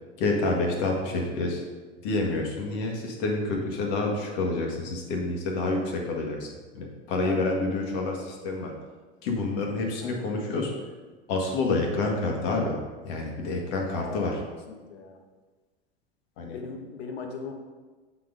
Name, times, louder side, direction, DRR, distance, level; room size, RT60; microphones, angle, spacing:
voice 1, 0.2-1.6 2.0-6.5 6.7-8.7 9.2-10.7 11.3-12.8 13.0-14.4 16.4-16.6, left 2 dB, 60° left, 1 dB, 1.6 m, -28 dB
voice 2, 10.0-10.5 13.9-14.3 14.7-15.1 16.5-17.5, left 5 dB, 80° left, 3 dB, 1.1 m, -39 dB
7.4 x 4.1 x 3.9 m, 1.3 s
hypercardioid pair, 90°, 31 cm